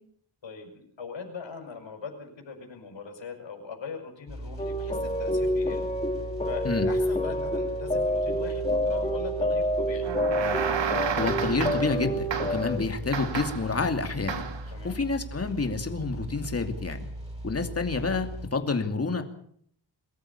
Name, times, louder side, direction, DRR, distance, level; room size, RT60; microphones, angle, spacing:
voice 1, 0.4-5.9 6.4-10.1 14.7-15.0, left 5 dB, 80° left, 3 dB, 5.7 m, -40 dB
sound 1, 4.3-18.5, right 1 dB, 15° right, 7.2 m, -39 dB
sound 2, 4.6-12.8, equal, 15° left, 1.8 m, -28 dB
sound 3, 10.0-12.0 12.3-12.7 13.1-13.7 14.3-14.7, right 7 dB, 75° right, 2.3 m, -31 dB
voice 2, 11.2-12.2 12.5-14.5 14.8-17.1 17.4-19.2, left 4 dB, 35° left, 6 dB, 2.6 m, -28 dB
23.0 x 14.0 x 8.6 m, 0.65 s
wide cardioid pair, 110°, 44 cm